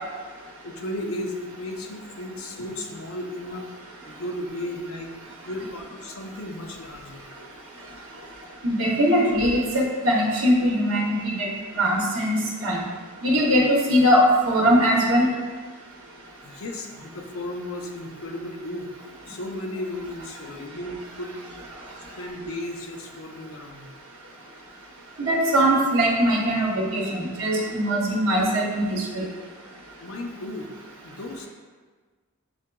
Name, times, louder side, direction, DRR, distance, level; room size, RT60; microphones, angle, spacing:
voice 1, 0.6-3.7 4.1-5.1 5.5-7.3 16.4-18.9 19.3-21.4 22.2-23.9 30.0-30.7 31.0-31.5, left 1 dB, 75° left, 3 dB, 0.6 m, -34 dB
voice 2, 8.6-11.5 11.8-12.8 13.2-15.3 25.2-29.3, equal, 65° right, -2 dB, 0.8 m, -21 dB
7.0 x 2.8 x 2.2 m, 1.4 s
head